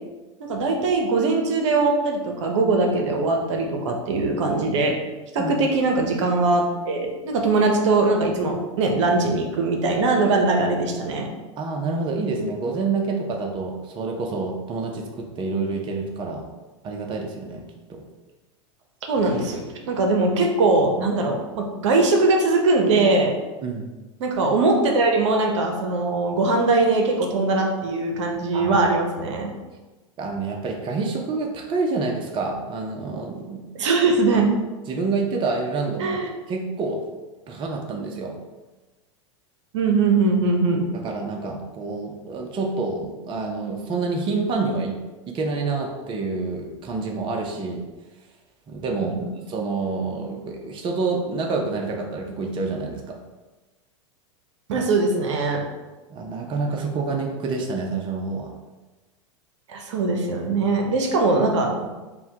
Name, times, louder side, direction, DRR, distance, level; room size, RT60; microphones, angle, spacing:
voice 1, 0.4-4.9 5.3-11.3 19.1-23.3 24.2-29.5 33.7-34.6 36.0-36.3 39.7-40.9 49.0-49.3 54.7-55.6 59.7-61.9, right 3 dB, 70° right, 2 dB, 0.7 m, -21 dB
voice 2, 11.6-16.5 16.8-17.6 17.9-18.0 23.6-23.9 28.5-28.9 30.2-33.7 34.9-36.2 36.5-37.0 37.5-38.3 40.9-45.0 45.3-47.9 48.7-49.2 49.5-53.2 54.7-54.8 56.1-58.5, right 3 dB, 30° right, 1 dB, 0.6 m, -27 dB
5.4 x 2.2 x 2.8 m, 1.2 s
hypercardioid pair, 95°, 16 cm